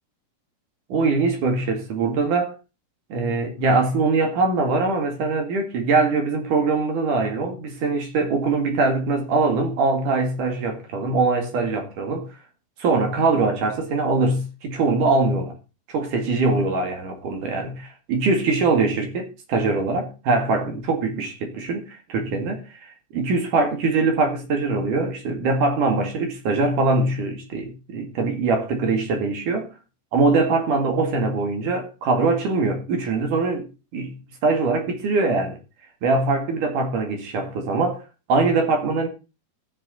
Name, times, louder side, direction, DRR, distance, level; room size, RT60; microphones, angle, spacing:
voice 1, 0.9-2.6 3.1-12.3 12.8-15.5 15.9-22.6 23.1-29.7 30.1-33.7 33.9-34.1 34.4-35.6 36.0-38.0 38.3-39.1, right 3 dB, 55° right, 3.3 m, -22 dB
14.5 x 7.0 x 4.1 m
omnidirectional pair, 4.7 m